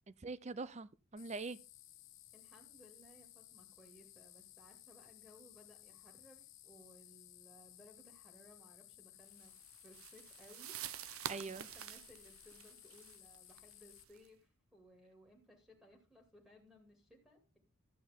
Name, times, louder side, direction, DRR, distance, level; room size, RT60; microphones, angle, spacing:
voice 1, 0.1-1.6 11.3-11.7, right 3 dB, 35° right, 0.6 m, -43 dB
sound 1, 1.2-14.0, left 15 dB, 60° left, 0.9 m, -59 dB
voice 2, 2.3-9.5 9.8-17.6, equal, 5° right, 2.4 m, -62 dB
sound 2, 9.4-14.3, right 10 dB, 80° right, 0.7 m, -48 dB
12.5 x 9.0 x 3.6 m
head